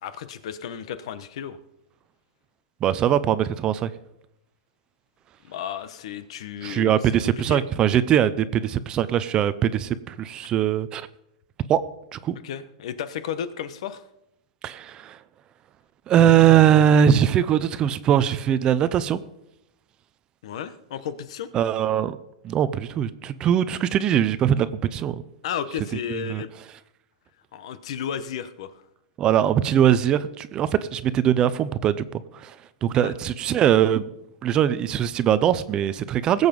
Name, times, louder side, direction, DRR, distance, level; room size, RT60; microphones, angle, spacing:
voice 1, 0.0-1.6 5.4-7.2 7.5-7.6 12.4-14.0 20.4-21.5 25.4-26.5 27.5-28.7 33.0-33.1, left 8 dB, 60° left, 13 dB, 1.2 m, -33 dB
voice 2, 2.8-3.9 6.6-11.1 11.7-11.8 12.1-12.4 14.6-15.2 16.1-19.2 21.5-22.2 22.4-25.2 26.1-26.4 29.2-32.6 32.8-34.1 34.4-36.5, right 10 dB, 25° right, 15 dB, 0.6 m, -21 dB
19.5 x 8.0 x 5.4 m, 0.84 s
supercardioid pair, 155°, 4 cm